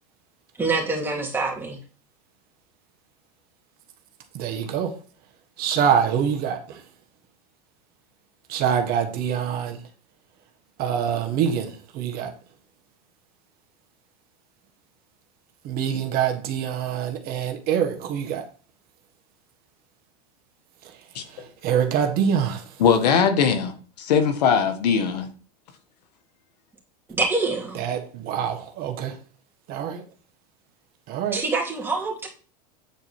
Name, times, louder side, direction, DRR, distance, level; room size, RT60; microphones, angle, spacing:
voice 1, 0.6-1.8 27.1-27.8 31.3-32.3, right 3 dB, 10° right, 2.8 m, -25 dB
voice 2, 4.3-4.9 5.6-6.8 8.5-9.8 10.8-12.3 15.6-18.4 21.3-22.6 27.7-29.1 29.7-30.0 31.1-31.4, right 8 dB, 45° right, 1.6 m, -25 dB
voice 3, 22.8-25.3, left 6 dB, 85° left, 1.6 m, -20 dB
9.2 x 4.5 x 4.4 m
supercardioid pair, 120°, 20 cm